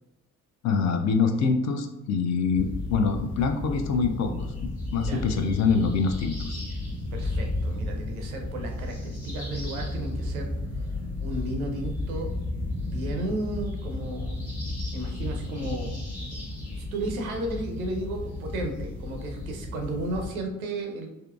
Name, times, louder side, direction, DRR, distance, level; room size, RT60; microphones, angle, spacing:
voice 1, 0.6-6.6, left 5 dB, 45° left, 6 dB, 0.5 m, -25 dB
sound 1, 2.5-20.3, left 2 dB, 90° left, 1.3 m, -33 dB
voice 2, 7.1-10.6 11.2-12.3 12.8-14.4 14.9-16.0 16.7-21.1, right 1 dB, 85° right, 3 dB, 0.6 m, -33 dB
3.6 x 2.6 x 2.3 m, 0.97 s
figure-of-eight pair, 45°, 41 cm